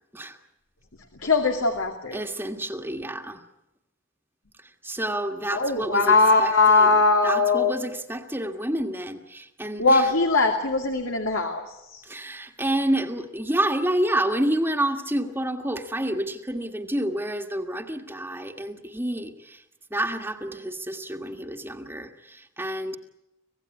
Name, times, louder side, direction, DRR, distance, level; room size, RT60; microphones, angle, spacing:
voice 1, 1.2-2.2 5.5-7.8 9.8-12.0, left 3 dB, 80° left, 4 dB, 2.5 m, -21 dB
voice 2, 2.1-3.4 4.6-6.9 7.2-10.1 12.0-19.6 19.9-23.0, right 1 dB, 10° right, 4 dB, 1.7 m, -29 dB
26.5 x 17.0 x 9.6 m, 0.92 s
head